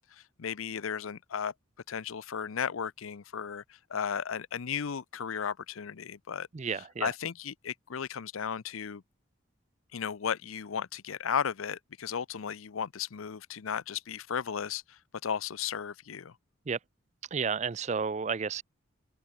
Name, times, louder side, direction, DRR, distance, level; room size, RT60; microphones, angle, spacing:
voice 1, 0.0-1.5 1.9-3.6 3.9-6.5 7.0-9.0 9.9-16.3, left 7 dB, 90° left, 0.6 m, -35 dB
voice 2, 6.5-7.1 16.7-16.8 17.3-18.6, right 5 dB, 35° right, 0.4 m, -31 dB
head